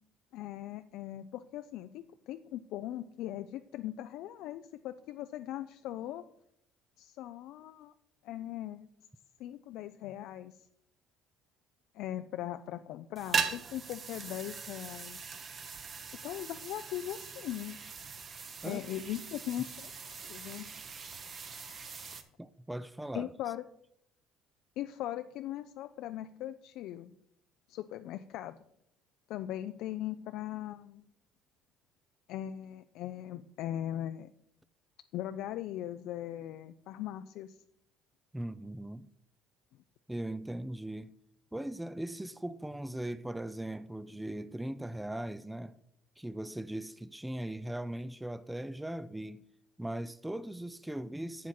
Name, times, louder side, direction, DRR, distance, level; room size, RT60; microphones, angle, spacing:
voice 1, 0.3-6.2 7.0-7.9 8.2-8.9 9.4-10.7 11.9-15.3 16.2-17.8 18.6-19.9 20.2-20.7 23.1-23.6 24.8-27.2 27.7-28.6 29.3-31.1 32.3-34.3 35.1-37.6, left 12 dB, 70° left, 0.3 m, -39 dB
sound 1, 13.1-22.2, right 5 dB, 40° right, 1.0 m, -40 dB
voice 2, 22.4-23.3 38.3-39.1 40.1-41.2 41.5-45.8 46.2-49.5 49.8-51.5, right 1 dB, 5° right, 0.4 m, -39 dB
8.1 x 7.4 x 4.3 m
supercardioid pair, 85°, 0 cm